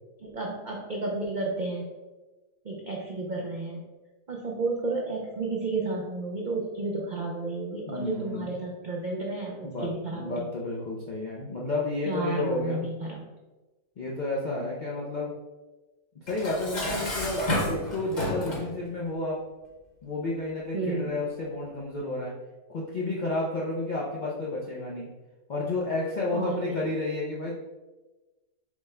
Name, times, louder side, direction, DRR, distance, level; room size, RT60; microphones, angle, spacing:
voice 1, 0.2-1.9 2.6-3.8 4.3-10.5 12.1-13.2 20.7-21.1 26.3-26.6, right 3 dB, 80° right, -2 dB, 0.4 m, -32 dB
voice 2, 7.9-8.5 9.6-12.8 14.0-15.3 16.1-19.4 20.0-22.3 22.7-25.1 25.5-27.6, left 2 dB, 75° left, -4 dB, 0.4 m, -31 dB
Dishes pots and pans, 16.3-18.7, left 1 dB, 35° left, 0.9 m, -30 dB
5.1 x 2.1 x 4.8 m, 1.2 s
omnidirectional pair, 1.6 m